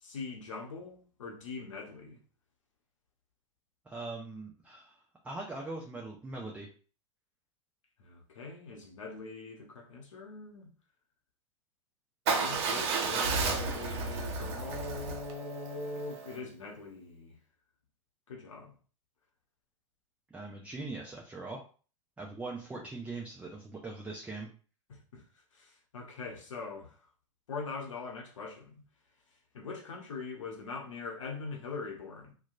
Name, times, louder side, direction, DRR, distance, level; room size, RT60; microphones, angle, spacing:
voice 1, 0.0-2.2 8.0-10.7 12.3-17.4 18.3-18.7 24.9-25.2 25.5-27.0 27.5-28.8 29.5-32.3, left 4 dB, 75° left, 0.7 m, -42 dB
voice 2, 3.9-6.7 20.3-21.6 22.2-24.5, right 3 dB, 10° right, 0.4 m, -41 dB
Motorcycle / Engine starting / Idling, 12.3-16.4, right 4 dB, 55° right, 0.6 m, -32 dB
2.8 x 2.2 x 2.5 m
figure-of-eight pair, 90°, 17 cm